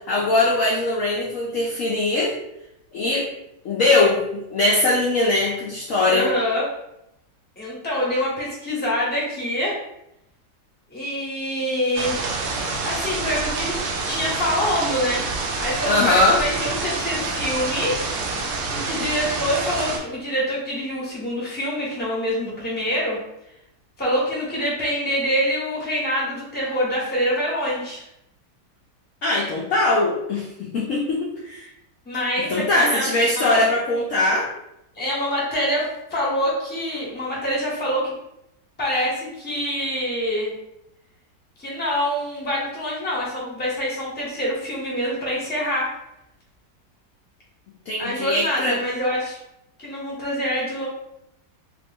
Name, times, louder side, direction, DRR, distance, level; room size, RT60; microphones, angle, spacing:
voice 1, 0.1-2.3 2.9-3.3 3.6-6.3 15.8-16.4 29.2-31.7 32.5-34.5 47.9-48.8, left 2 dB, 65° left, -4 dB, 0.8 m, -21 dB
voice 2, 6.1-6.7 7.6-9.8 10.9-12.1 12.8-13.8 14.1-18.0 18.7-23.2 24.0-28.0 32.0-33.6 34.9-38.1 38.8-40.5 41.6-45.9 48.0-49.4 49.8-50.9, equal, 10° left, -6 dB, 0.8 m, -25 dB
sound 1, 11.9-20.0, right 3 dB, 70° right, 0.7 m, -27 dB
2.9 x 2.5 x 3.5 m, 0.83 s
omnidirectional pair, 1.9 m